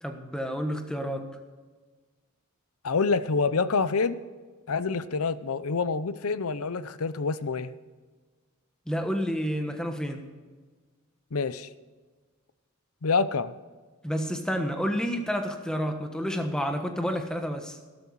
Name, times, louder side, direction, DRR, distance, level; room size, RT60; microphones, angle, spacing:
voice 1, 0.0-1.3 8.9-10.2 14.0-17.8, equal, 5° left, 5 dB, 1.2 m, -30 dB
voice 2, 2.8-4.2 4.7-7.7 11.3-11.7 13.0-13.5, left 4 dB, 80° left, 15 dB, 0.7 m, -27 dB
13.0 x 12.5 x 4.8 m, 1.4 s
head